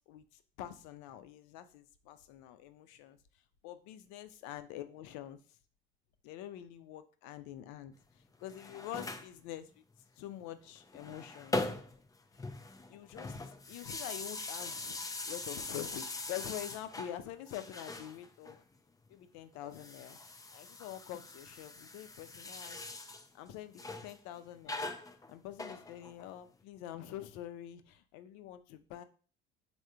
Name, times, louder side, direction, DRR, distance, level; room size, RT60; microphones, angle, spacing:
voice 1, 0.0-3.2 3.6-5.4 6.2-7.9 8.4-9.7 10.2-11.6 12.9-13.4 13.7-15.0 15.3-18.6 19.1-20.2 20.5-22.9 23.3-24.9 25.3-29.0, left 12 dB, 65° left, 11 dB, 0.5 m, -46 dB
sound 1, 8.3-9.3 10.7-12.1 12.3-17.1 17.5-18.6 19.6-23.3 23.8-24.2 24.7-26.3, left 2 dB, 10° left, 0.4 m, -42 dB
3.6 x 2.1 x 4.4 m, 0.40 s
hypercardioid pair, 65°, 30 cm